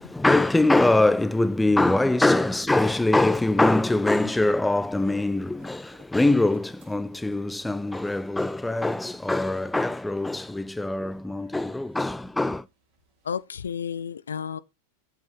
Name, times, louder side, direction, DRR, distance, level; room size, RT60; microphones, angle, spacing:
voice 1, 0.1-12.7, left 2 dB, 5° left, 0.6 m, -23 dB
sound 1, 0.6-13.4, right 3 dB, 45° right, 5.3 m, -59 dB
voice 2, 13.2-14.6, left 7 dB, 70° left, 0.5 m, -32 dB
8.3 x 8.2 x 4.3 m
figure-of-eight pair, 90°, 0 cm